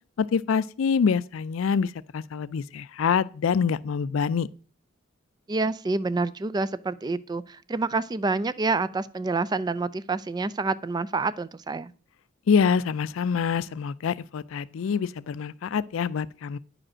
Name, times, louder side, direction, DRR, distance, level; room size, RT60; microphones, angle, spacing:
voice 1, 0.2-4.5 12.5-16.6, left 6 dB, 75° left, 0.4 m, -25 dB
voice 2, 5.5-11.9, right 3 dB, 20° right, 0.3 m, -28 dB
9.7 x 5.0 x 6.2 m
head